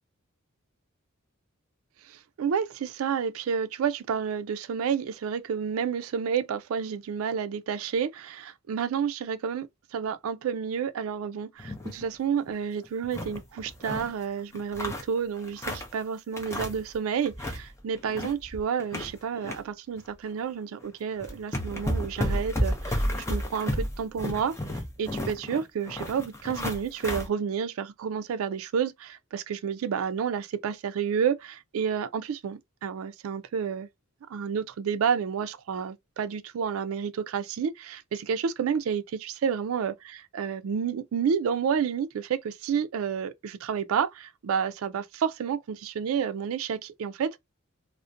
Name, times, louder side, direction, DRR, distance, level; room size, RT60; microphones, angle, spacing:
voice 1, 2.1-23.0 23.3-24.5 25.0-33.9 34.3-47.4, right 7 dB, 80° right, 0.3 m, -30 dB
sound 1, 11.6-12.0 12.4-12.5 12.8-14.1 14.5-16.0 16.4-16.9 17.2-17.6 18.0-19.6 20.0-20.1 20.8-20.9 21.2-27.3, equal, 15° left, 0.5 m, -32 dB
2.4 x 2.1 x 2.5 m
head